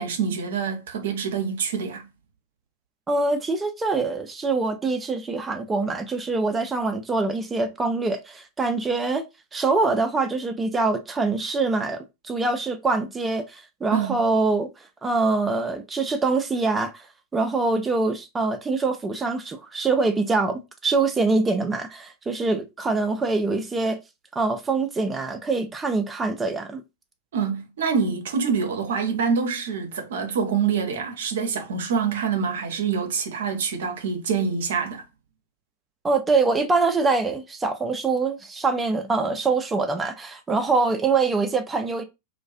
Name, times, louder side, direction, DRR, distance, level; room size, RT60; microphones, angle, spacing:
voice 1, 0.0-2.1 13.9-14.2 27.3-35.0, right 6 dB, 65° right, 0.6 m, -26 dB
voice 2, 3.1-9.2 9.5-17.1 17.3-24.0 24.3-26.8 36.0-42.0, right 3 dB, 15° right, 0.4 m, -24 dB
2.3 x 2.1 x 2.5 m
figure-of-eight pair, 90°, 0 cm